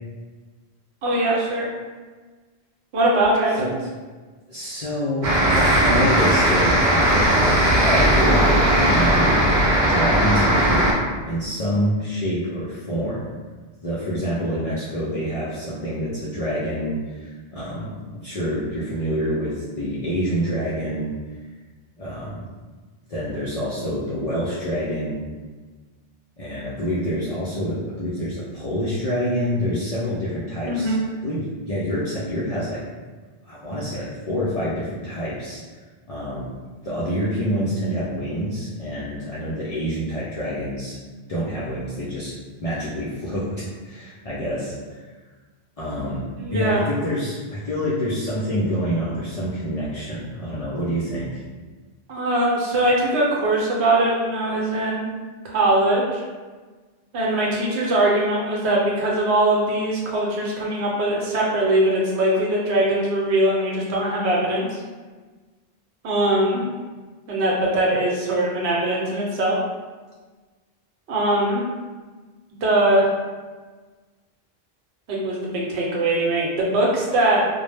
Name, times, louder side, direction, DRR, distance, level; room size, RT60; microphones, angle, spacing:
voice 1, 1.0-1.7 2.9-3.7 30.6-31.1 46.4-46.9 52.1-55.1 55.4-56.2 57.1-64.8 66.0-66.6 67.3-69.6 71.1-71.6 72.6-73.1 75.1-77.5, right 1 dB, 85° right, -3 dB, 0.9 m, -21 dB
voice 2, 4.5-7.3 7.8-9.5 9.9-11.0 11.3-13.2 13.8-21.1 22.0-22.5 23.1-25.2 26.4-30.9 31.2-32.8 33.5-35.6 36.1-36.5 36.8-41.0 41.3-42.3 42.6-43.5 43.8-45.0 45.8-51.4, equal, 55° left, -8 dB, 0.4 m, -27 dB
sound 1, 5.2-10.9, right 1 dB, 55° right, 0.6 m, -18 dB
2.0 x 2.0 x 3.2 m, 1.4 s
omnidirectional pair, 1.1 m